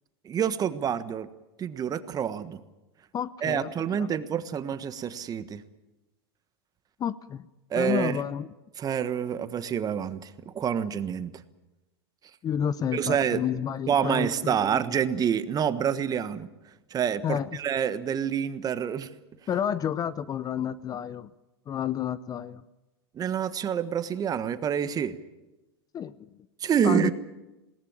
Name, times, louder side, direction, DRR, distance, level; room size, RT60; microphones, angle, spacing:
voice 1, 0.2-1.3 1.6-2.6 3.4-5.6 7.7-8.2 8.8-11.3 12.9-13.4 13.9-16.5 16.9-19.1 23.1-25.1 26.6-27.1, right 8 dB, 30° right, 12 dB, 1.4 m, -27 dB
voice 2, 3.1-3.7 4.0-4.1 7.0-7.4 7.7-8.5 12.4-14.8 17.2-17.5 19.5-21.3 21.7-22.6 25.9-26.3 26.8-27.1, left 9 dB, 30° left, 17 dB, 0.7 m, -30 dB
21.5 x 18.5 x 8.9 m, 1.0 s
hypercardioid pair, 105°, 13 cm